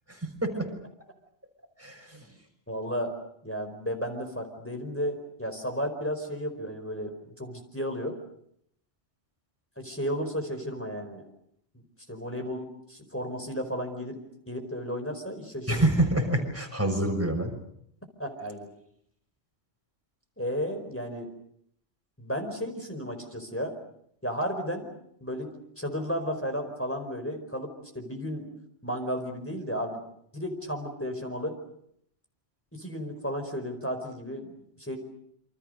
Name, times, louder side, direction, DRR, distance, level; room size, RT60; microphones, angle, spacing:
voice 1, 0.1-0.7 1.8-2.3 15.7-17.5, right 1 dB, 10° right, 3 dB, 6.0 m, -27 dB
voice 2, 2.7-3.1 3.4-8.2 9.8-11.2 12.1-15.9 18.2-18.7 20.4-21.3 22.2-23.7 24.2-24.9 25.2-25.5 25.8-28.5 28.8-30.0 30.3-31.6 32.7-35.0, equal, 10° left, 4 dB, 4.7 m, -33 dB
28.0 x 26.0 x 6.6 m, 0.72 s
omnidirectional pair, 1.2 m